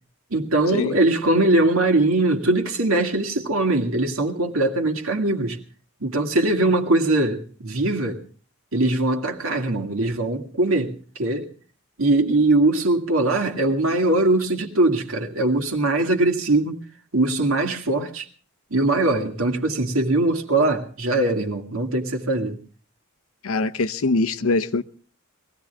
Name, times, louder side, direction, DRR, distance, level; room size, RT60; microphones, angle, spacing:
voice 1, 0.3-5.6 6.0-8.2 8.7-10.9 11.2-11.5 12.0-16.8 17.1-18.2 18.7-22.6, right 2 dB, 75° right, 2.2 m, -21 dB
voice 2, 23.4-24.8, left 3 dB, 80° left, 0.8 m, -22 dB
22.0 x 16.5 x 3.4 m
head